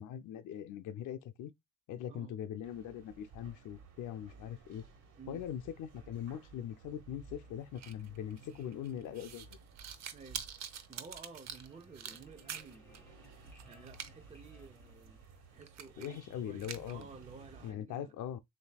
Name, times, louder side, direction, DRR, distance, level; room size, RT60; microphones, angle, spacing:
voice 1, 0.0-1.5 1.9-4.8 5.3-9.6 16.0-17.1 17.6-18.4, left 10 dB, 80° left, 0.6 m, -41 dB
sound 1, 2.6-17.7, right 4 dB, 80° right, 1.3 m, -57 dB
sound 2, 7.8-13.0 13.2-14.1 14.5-14.6 15.1-15.2 15.6-16.2 16.6-17.0, right 8 dB, 60° right, 0.7 m, -45 dB
voice 2, 10.1-10.4 10.9-13.1 13.7-15.2 15.5-18.1, right 5 dB, 25° right, 0.6 m, -53 dB
sound 3, 11.0-15.7, left 2 dB, 5° left, 1.2 m, -64 dB
6.8 x 2.7 x 2.3 m
cardioid pair, 90°, 30 cm